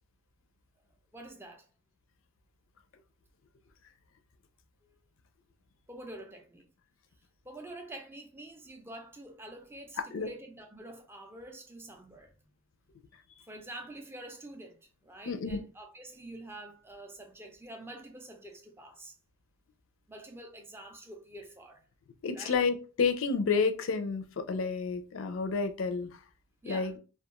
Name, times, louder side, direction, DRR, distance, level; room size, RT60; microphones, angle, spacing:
voice 1, 1.1-1.6 5.9-6.7 7.4-12.3 13.4-19.1 20.1-21.8 22.3-22.6 26.6-26.9, right 1 dB, 10° right, 0.4 m, -47 dB
voice 2, 10.0-10.3 15.3-15.6 22.2-26.1 26.6-27.0, left 5 dB, 65° left, 0.4 m, -30 dB
2.3 x 2.3 x 2.9 m
head